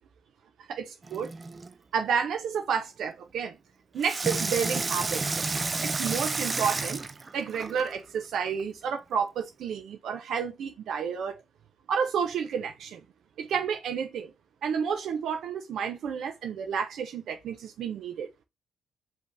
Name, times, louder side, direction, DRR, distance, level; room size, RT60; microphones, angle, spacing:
voice 1, 0.7-1.3 1.9-3.6 3.9-5.5 5.8-7.0 7.3-11.4 11.9-13.0 13.4-14.3 14.6-18.3, right 7 dB, 70° right, 0.7 m, -30 dB
Water tap faucet / Sink (filling or washing), 1.0-1.7 4.0-7.9 8.6-8.7, right 3 dB, 25° right, 0.4 m, -31 dB
5.2 x 3.0 x 3.3 m
cardioid pair, 90°, 0 cm